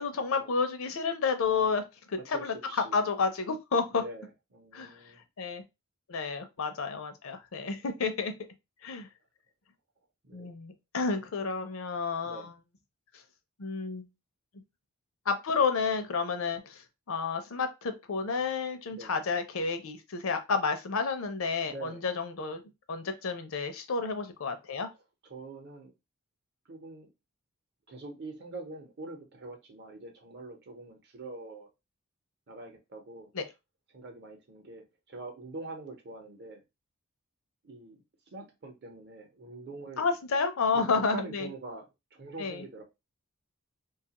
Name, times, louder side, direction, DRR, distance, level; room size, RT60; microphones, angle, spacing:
voice 1, 0.0-2.5 2.9-4.0 4.7-4.9 5.4-5.6 6.1-8.3 8.8-9.1 10.3-12.5 13.6-14.1 15.3-16.8 17.1-22.6 22.9-24.9 33.3-33.4 40.0-41.5 42.4-42.6, left 4 dB, 65° left, 0.5 m, -30 dB
voice 2, 2.2-3.0 3.9-5.3 10.2-10.5 12.2-12.5 18.9-19.2 21.6-22.0 25.2-25.9 26.7-27.1 27.9-31.7 32.5-33.3 33.9-36.6 37.6-40.1 40.7-42.8, right 2 dB, 50° right, 0.7 m, -44 dB
2.7 x 2.3 x 2.8 m
head